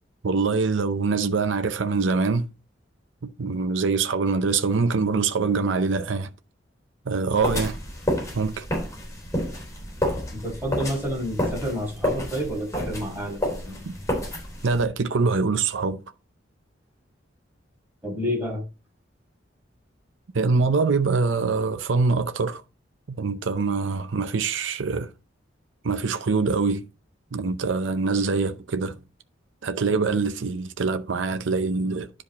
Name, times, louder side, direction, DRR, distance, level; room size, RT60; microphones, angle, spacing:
voice 1, 0.2-2.5 3.2-6.3 7.1-7.8 8.3-8.7 13.8-14.0 14.6-16.0 20.3-22.6 23.1-25.1 25.8-26.9 27.3-29.0 29.6-32.1, right 4 dB, 80° right, 0.6 m, -24 dB
sound 1, 7.4-14.8, left 1 dB, 15° left, 3.3 m, -30 dB
voice 2, 10.3-13.8 18.0-18.6, equal, 10° right, 5.3 m, -29 dB
10.5 x 5.0 x 4.1 m
head